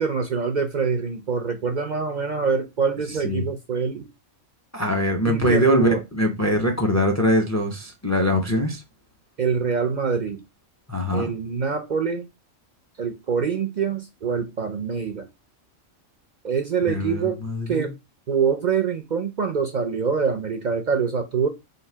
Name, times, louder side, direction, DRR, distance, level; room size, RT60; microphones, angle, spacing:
voice 1, 0.0-4.1 5.3-6.0 9.4-10.4 11.1-12.3 13.0-15.3 16.4-17.4 17.7-17.9 18.3-21.5, right 6 dB, 60° right, 0.4 m, -24 dB
voice 2, 3.1-3.5 4.7-8.8 10.9-11.3 16.8-17.9, equal, 25° left, 0.3 m, -22 dB
3.8 x 2.7 x 4.4 m
omnidirectional pair, 1.4 m